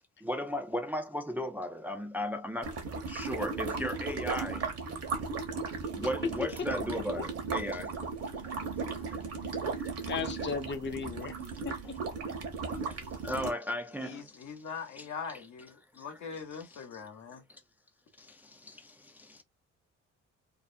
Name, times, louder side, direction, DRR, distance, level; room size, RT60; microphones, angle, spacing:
voice 1, 0.2-4.7 5.9-7.9 9.1-9.2 9.8-9.9 11.4-11.5 12.7-14.4 14.9-15.1 15.9-17.0 17.5-17.6 18.2-19.4, left 1 dB, 5° right, 0.3 m, -37 dB
sound 1, 2.6-13.5, right 4 dB, 55° right, 0.9 m, -36 dB
voice 2, 10.1-11.3 11.6-11.8, left 5 dB, 40° left, 0.7 m, -35 dB
voice 3, 14.0-17.4, left 6 dB, 75° left, 0.9 m, -42 dB
2.6 x 2.0 x 2.4 m
cardioid pair, 90°, 30 cm